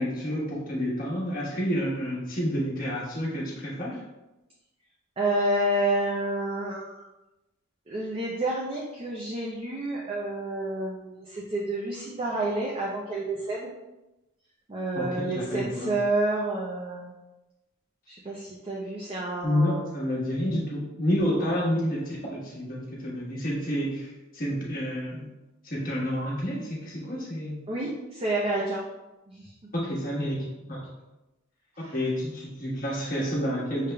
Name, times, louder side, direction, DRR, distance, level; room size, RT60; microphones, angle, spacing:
voice 1, 0.0-4.0 14.9-15.9 19.4-25.3 25.6-27.6 29.7-30.9 31.9-33.9, equal, 40° left, -5 dB, 1.3 m, -29 dB
voice 2, 5.2-7.0 7.9-13.7 14.7-17.1 18.1-19.8 21.4-21.5 27.7-28.8 29.3-29.5 31.8-32.0, right 2 dB, 25° right, -3 dB, 0.5 m, -29 dB
6.5 x 3.5 x 2.2 m, 1.0 s
head